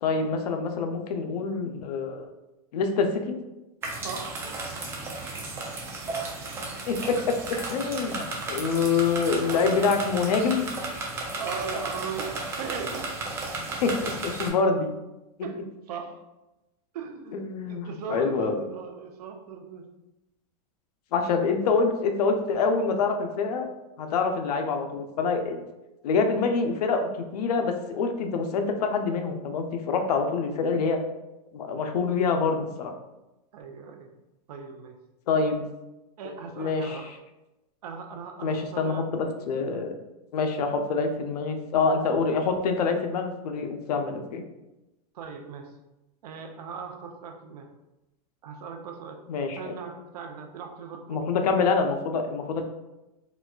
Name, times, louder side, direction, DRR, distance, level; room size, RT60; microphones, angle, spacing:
voice 1, 0.0-2.3 2.7-3.4 6.9-7.3 7.7-10.7 13.8-14.9 17.3-18.6 21.1-23.7 24.0-25.6 26.0-27.0 27.3-31.0 31.5-32.9 35.3-35.6 36.6-37.1 38.4-39.9 40.3-44.4 49.3-49.7 51.1-52.6, left 4 dB, 90° left, 5 dB, 0.5 m, -26 dB
sound 1, 3.8-14.5, right 3 dB, 15° right, 0.4 m, -34 dB
voice 2, 4.0-4.6 7.0-7.1 9.5-9.8 11.3-13.1 15.4-16.2 16.9-19.9 33.5-34.1 34.5-35.0 36.2-37.1 37.8-39.0 39.4-40.0 45.1-45.7 46.2-47.7 48.4-49.2 49.6-51.2, right 5 dB, 85° right, 4 dB, 0.6 m, -38 dB
4.0 x 2.3 x 2.3 m, 0.99 s
supercardioid pair, 160°, 20 cm